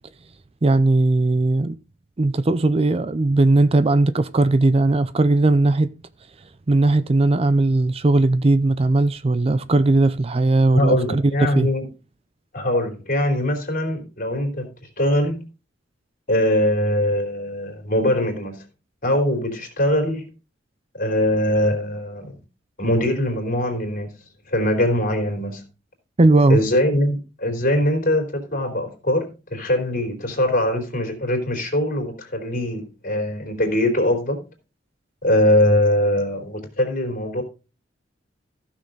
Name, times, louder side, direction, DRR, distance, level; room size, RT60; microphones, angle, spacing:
voice 1, 0.6-1.8 2.2-5.9 6.7-11.2 11.5-11.7 26.2-26.6, right 2 dB, 30° right, 0.5 m, -18 dB
voice 2, 10.7-11.9 12.5-14.7 15.0-15.4 16.3-18.6 19.0-20.2 20.9-22.3 22.8-24.1 24.5-25.6 26.5-34.4 35.2-37.4, left 1 dB, 45° left, 3.4 m, -22 dB
15.0 x 6.4 x 3.9 m
head